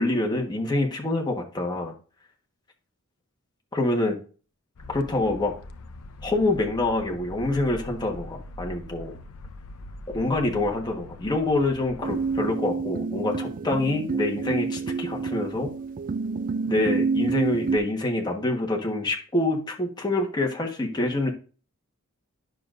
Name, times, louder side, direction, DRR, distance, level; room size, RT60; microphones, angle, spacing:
voice 1, 0.0-1.9 3.7-4.2 4.9-5.5 6.2-9.2 10.1-15.7 16.7-21.3, left 2 dB, 20° left, 1 dB, 1.3 m, -26 dB
sound 1, 4.8-12.4, left 1 dB, 75° left, 0.7 m, -42 dB
sound 2, 12.0-17.8, right 4 dB, 35° right, 0.3 m, -28 dB
9.7 x 6.4 x 2.5 m, 0.38 s
head